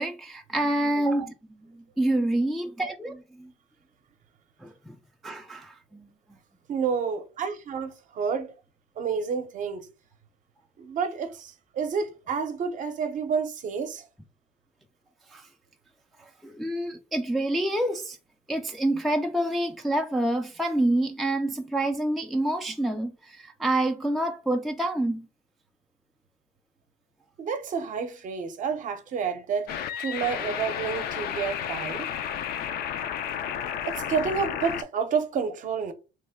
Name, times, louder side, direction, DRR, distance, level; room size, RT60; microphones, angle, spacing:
voice 1, 0.0-1.3 2.0-3.5 4.6-5.0 5.2-6.1 15.3-15.5 16.4-18.2 18.5-25.3, right 1 dB, ahead, 0.3 m, -27 dB
voice 2, 6.7-8.5 9.0-9.9 10.8-14.1 27.4-32.1 33.9-35.9, right 6 dB, 50° right, 0.6 m, -29 dB
sound 1, 29.7-34.8, left 9 dB, 70° left, 0.4 m, -32 dB
3.1 x 2.1 x 3.4 m
cardioid pair, 110°, 17 cm